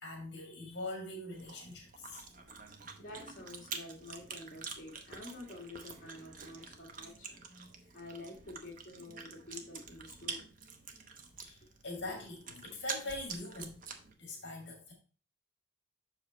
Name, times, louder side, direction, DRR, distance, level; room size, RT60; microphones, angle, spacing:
voice 1, 0.0-2.3 11.4-13.8 14.2-14.9, left 2 dB, 60° left, 1 dB, 1.9 m, -43 dB
Chewing mastication, 1.3-14.1, right 5 dB, 45° right, 0.8 m, -47 dB
voice 2, 3.0-7.4 7.9-10.4 11.6-11.7, left 2 dB, 40° left, -4 dB, 1.8 m, -49 dB
6.2 x 5.0 x 4.1 m, 0.37 s
head